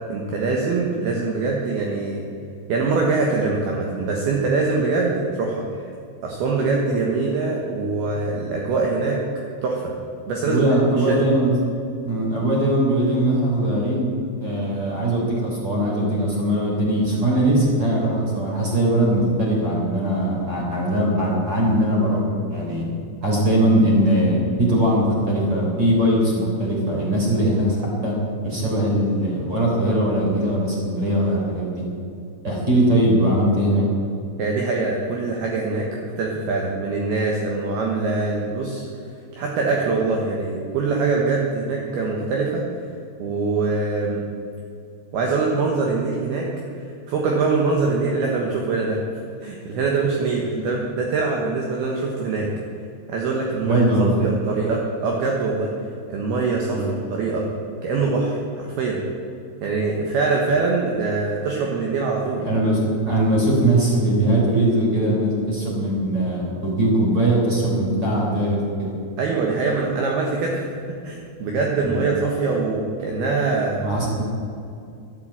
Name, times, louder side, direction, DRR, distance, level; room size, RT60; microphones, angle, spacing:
voice 1, 0.1-2.2 2.7-5.8 6.2-9.2 9.6-9.9 10.3-10.6 11.0-11.2 34.4-35.9 36.2-38.8 39.3-42.7 43.2-44.2 45.1-46.5 47.1-49.0 49.4-52.5 53.1-53.8 54.2-55.7 56.1-57.5 57.8-59.0 59.6-62.4 69.2-73.8, right 3 dB, 65° right, -1 dB, 2.8 m, -23 dB
voice 2, 10.4-11.5 12.0-14.1 14.4-22.2 22.5-22.9 23.2-28.1 28.4-31.9 32.4-33.9 53.6-54.2 56.7-56.9 62.4-68.9 71.8-72.1 73.8-74.2, right 1 dB, 25° right, -3 dB, 3.5 m, -20 dB
12.0 x 11.0 x 8.7 m, 2.6 s
omnidirectional pair, 5.7 m